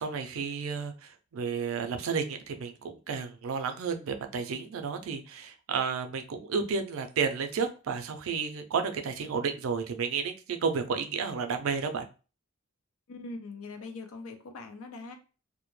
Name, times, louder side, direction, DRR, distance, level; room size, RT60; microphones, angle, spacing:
voice 1, 0.0-12.1, right 5 dB, 75° right, 7 dB, 0.4 m, -32 dB
voice 2, 13.1-15.2, left 3 dB, 85° left, 7 dB, 0.5 m, -42 dB
2.2 x 2.0 x 3.0 m, 0.34 s
head